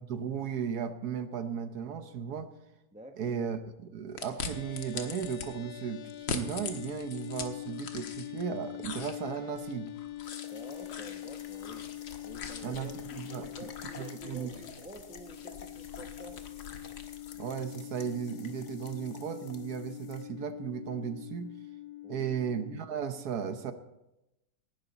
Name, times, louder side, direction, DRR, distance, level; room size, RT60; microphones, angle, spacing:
voice 1, 0.0-2.5 3.2-9.9 12.6-13.7 14.0-14.6 17.4-21.6 22.1-23.7, right 7 dB, 60° right, 9 dB, 1.3 m, -36 dB
voice 2, 2.9-3.3 10.4-11.9 12.2-16.4 22.0-22.3, right 1 dB, 10° right, 5 dB, 0.5 m, -49 dB
sound 1, 4.2-5.5 6.1-8.5 8.8-17.4, left 6 dB, 80° left, 2.0 m, -43 dB
sound 2, 4.4-22.8, left 15 dB, 60° left, 1.3 m, -44 dB
sound 3, 10.2-20.2, left 5 dB, 45° left, 1.2 m, -52 dB
18.0 x 11.5 x 4.0 m, 0.92 s
omnidirectional pair, 2.0 m